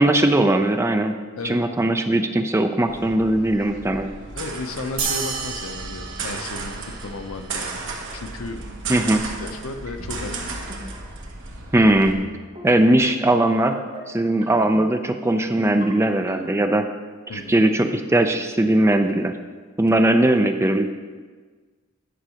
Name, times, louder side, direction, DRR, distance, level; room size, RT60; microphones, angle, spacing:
voice 1, 0.0-1.2 1.4-4.1 8.9-9.2 11.7-12.2 12.6-13.7 14.1-16.8 17.3-19.3 19.8-20.9, right 1 dB, 15° right, 7 dB, 0.4 m, -19 dB
sound 1, 2.9-12.1, right 3 dB, 60° right, 1.3 m, -34 dB
voice 2, 4.3-8.6 9.4-10.7 17.3-17.6, left 2 dB, 85° left, 7 dB, 0.7 m, -34 dB
sound 2, 5.0-7.7, right 6 dB, 85° right, 1.2 m, -31 dB
sound 3, 9.9-10.3 10.7-11.0 11.7-12.2 12.5-12.8 13.6-14.0 14.4-14.8 15.4-15.8 16.3-16.6, equal, 30° right, 2.1 m, -38 dB
10.0 x 4.7 x 6.4 m, 1.4 s
head